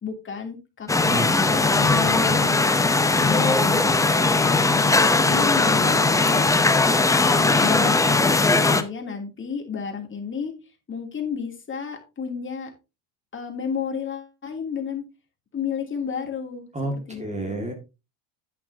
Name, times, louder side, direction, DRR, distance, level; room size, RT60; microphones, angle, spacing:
voice 1, 0.0-2.6 3.1-6.8 7.2-10.5 10.9-12.7 13.3-15.0 15.5-17.7, left 6 dB, 25° left, 3 dB, 2.8 m, -32 dB
sound 1, 0.9-8.8, left 3 dB, 5° left, 0.7 m, -19 dB
voice 2, 1.0-1.8 16.7-17.7, right 1 dB, 15° right, 4 dB, 2.0 m, -31 dB
10.5 x 9.8 x 2.7 m, 0.28 s
cardioid pair, 130°, 47 cm